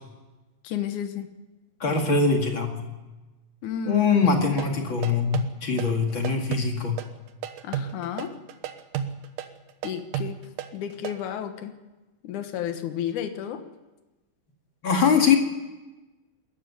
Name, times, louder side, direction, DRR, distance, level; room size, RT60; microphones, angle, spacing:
voice 1, 0.6-1.3 3.6-4.0 7.6-8.3 9.8-10.4 10.7-11.7 12.2-13.6, left 9 dB, 70° left, 8 dB, 2.7 m, -32 dB
voice 2, 1.8-2.8 3.9-7.0 14.8-15.4, left 5 dB, 40° left, 3 dB, 2.6 m, -22 dB
sound 1, 4.2-11.2, right 9 dB, 80° right, 2.8 m, -32 dB
21.5 x 14.0 x 9.5 m, 1.2 s
omnidirectional pair, 3.7 m